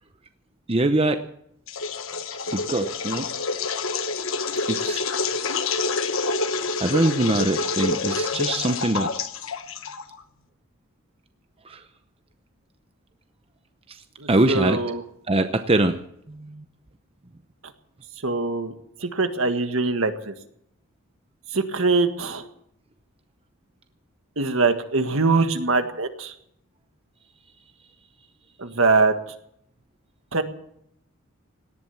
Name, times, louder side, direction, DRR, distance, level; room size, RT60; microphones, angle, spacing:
voice 1, 0.7-1.3 2.5-3.3 4.7-5.0 6.8-9.1 11.7-11.8 14.3-14.8 15.3-16.0 16.3-16.6, right 2 dB, 25° right, 8 dB, 0.7 m, -23 dB
sound 1, 1.7-10.2, left 4 dB, 65° left, 1.3 m, -27 dB
voice 2, 14.2-15.0 18.2-18.7 19.0-20.3 21.5-22.5 24.4-26.3 28.6-29.1 30.3-30.4, right 3 dB, 65° right, 8 dB, 1.7 m, -22 dB
18.0 x 11.5 x 7.1 m, 0.73 s
head